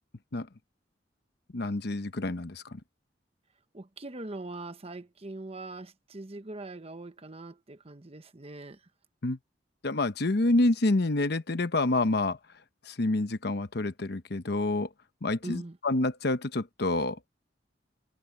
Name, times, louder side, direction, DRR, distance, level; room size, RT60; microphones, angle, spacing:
voice 1, 1.5-2.8 9.2-9.4 9.8-12.4 12.9-14.9 15.2-17.2, left 2 dB, 60° left, 1.0 m, -28 dB
voice 2, 3.7-8.8 15.4-15.8, right 2 dB, 35° right, 1.0 m, -42 dB
open air
head